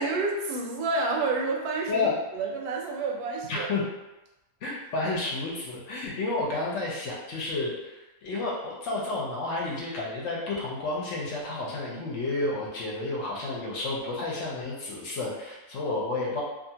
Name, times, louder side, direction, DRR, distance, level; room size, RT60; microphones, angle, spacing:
voice 1, 0.0-2.1 2.4-3.7, right 3 dB, 85° right, 0 dB, 1.1 m, -29 dB
voice 2, 3.5-3.8 4.6-16.4, left 3 dB, 65° left, -4 dB, 0.8 m, -31 dB
2.6 x 2.4 x 2.8 m, 1.0 s
omnidirectional pair, 1.6 m